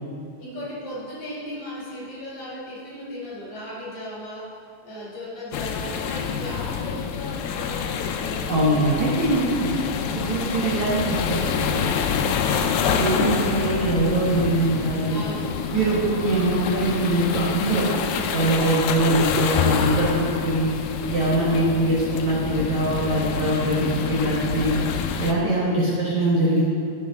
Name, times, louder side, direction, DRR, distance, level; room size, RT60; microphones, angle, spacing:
voice 1, 0.4-8.7 10.0-10.3 12.4-13.0 15.1-16.4 18.5-18.9 19.9-20.2 21.3-21.6 25.6-25.8, left 1 dB, 45° left, -7 dB, 4.1 m, -37 dB
sound 1, 5.5-25.3, left 7 dB, 80° left, 2.2 m, -27 dB
voice 2, 8.5-9.7 10.2-11.9 12.9-15.3 15.7-17.8 18.1-20.7 21.1-24.8 25.2-26.6, right 1 dB, 60° right, -7 dB, 2.3 m, -22 dB
14.5 x 7.7 x 3.6 m, 2.4 s
omnidirectional pair, 4.7 m